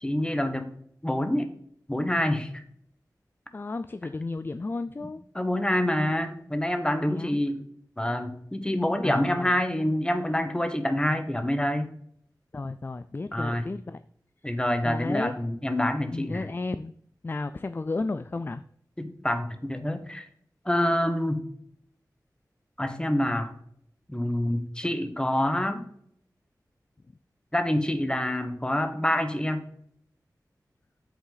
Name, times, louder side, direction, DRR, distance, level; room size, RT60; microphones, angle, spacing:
voice 1, 0.0-0.7 1.0-1.5 1.9-2.6 5.3-7.6 8.0-11.9 13.3-13.7 14.4-16.5 19.0-20.3 20.6-21.4 22.8-23.5 24.1-25.8 27.5-29.6, left 1 dB, 10° left, 8 dB, 1.1 m, -26 dB
voice 2, 3.5-5.2 7.1-7.4 9.0-9.6 12.5-14.0 14.8-15.3 16.1-16.9 17.2-18.6, left 3 dB, 30° left, 12 dB, 0.3 m, -33 dB
8.1 x 8.0 x 4.0 m, 0.66 s
wide cardioid pair, 80°, 7 cm